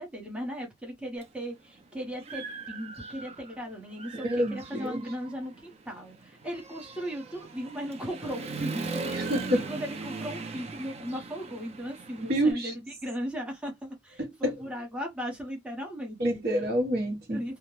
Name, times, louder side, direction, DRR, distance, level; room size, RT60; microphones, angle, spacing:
voice 1, 0.0-9.0 9.5-16.4 17.3-17.6, equal, 5° right, 0.8 m, -37 dB
Human voice / Motorcycle, 1.2-1.3 1.8-3.6 3.9-12.5, right 4 dB, 35° right, 0.4 m, -39 dB
voice 2, 4.2-5.0 9.1-9.6 12.3-12.7 14.2-14.5 16.2-17.4, right 1 dB, 55° right, 1.0 m, -27 dB
2.3 x 2.0 x 3.0 m
head